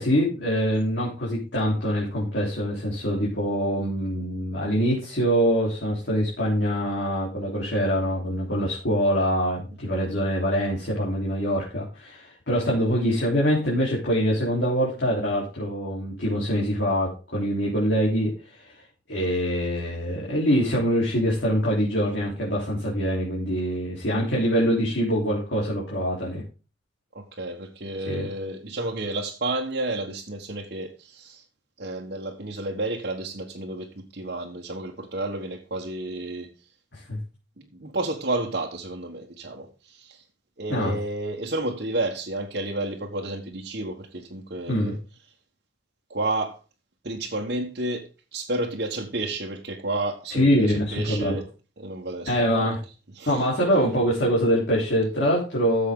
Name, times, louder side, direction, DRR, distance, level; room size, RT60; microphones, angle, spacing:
voice 1, 0.0-18.8 19.1-26.4 28.1-28.3 36.9-37.2 40.7-40.9 44.7-44.9 50.4-51.4 52.3-52.8 53.3-55.9, equal, 65° left, 3.7 m, -24 dB
voice 2, 27.1-31.4 31.8-36.7 37.6-40.2 40.6-45.0 46.1-46.6 47.0-51.4 51.8-52.7 53.1-53.5, right 2 dB, 55° right, 1.4 m, -31 dB
14.0 x 7.4 x 3.8 m
head